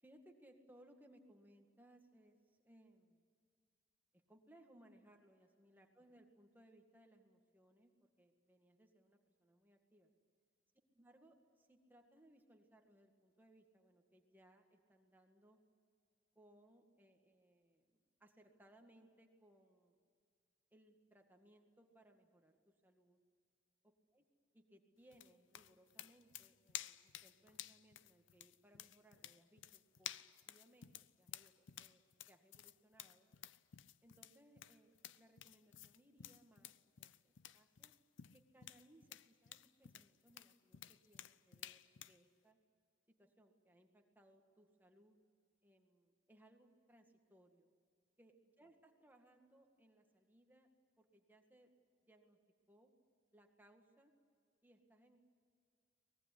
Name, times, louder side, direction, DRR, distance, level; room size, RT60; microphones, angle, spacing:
voice 1, 0.0-3.2 4.1-10.1 10.9-15.6 16.4-20.0 20.7-23.2 24.1-24.3 24.5-32.0 32.3-33.3 34.0-37.9 38.3-42.6 43.1-45.2 45.6-47.7 48.2-50.7 51.0-51.7 52.1-52.4 52.7-52.9 53.3-54.1 54.6-55.2, right 1 dB, 10° right, 3 dB, 1.9 m, -68 dB
sound 1, 25.1-42.2, left 12 dB, 65° left, 0.6 m, -53 dB
24.0 x 19.5 x 9.9 m, 2.2 s
head